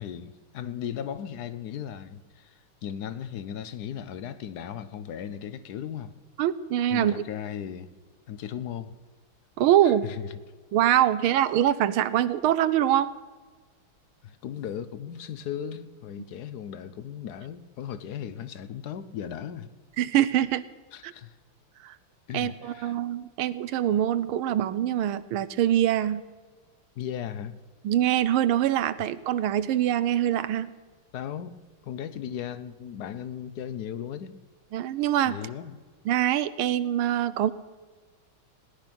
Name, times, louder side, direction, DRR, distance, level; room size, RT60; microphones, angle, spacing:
voice 1, 0.0-6.1 6.9-7.9 8.3-8.9 9.8-10.3 14.2-19.7 20.9-21.4 22.3-23.0 27.0-27.5 31.1-31.6 31.8-34.4 35.3-35.8, left 9 dB, 70° left, 1.0 m, -36 dB
voice 2, 6.4-7.2 9.6-10.1 10.7-13.1 20.0-20.6 21.0-21.1 21.8-22.0 22.3-26.2 27.8-30.7 34.7-35.4 36.0-37.5, right 11 dB, 80° right, 1.5 m, -24 dB
18.0 x 11.0 x 6.0 m
omnidirectional pair, 2.4 m